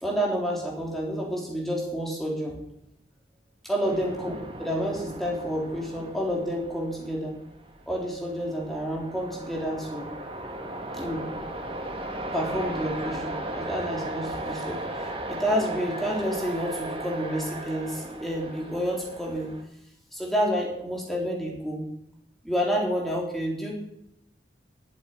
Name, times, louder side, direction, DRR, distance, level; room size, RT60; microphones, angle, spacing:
voice 1, 0.0-2.6 3.6-4.3 4.6-7.3 7.9-10.1 10.9-11.2 12.3-19.5 20.1-21.9 22.4-23.7, equal, ahead, -3 dB, 3.5 m, -29 dB
sound 1, 3.8-19.6, right 1 dB, 30° right, 1.8 m, -36 dB
12.5 x 8.2 x 9.3 m, 0.78 s
head